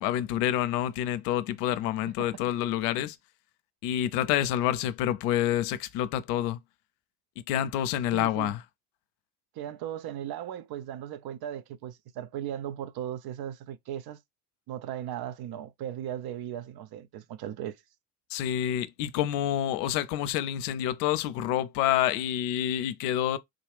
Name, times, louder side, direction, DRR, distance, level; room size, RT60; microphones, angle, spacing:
voice 1, 0.0-3.2 3.8-6.6 7.5-8.6 18.3-23.4, left 11 dB, 75° left, 0.6 m, -28 dB
voice 2, 8.1-8.5 9.5-14.2 14.7-17.8, right 10 dB, 50° right, 0.6 m, -37 dB
3.8 x 2.3 x 3.3 m
hypercardioid pair, 50°, 49 cm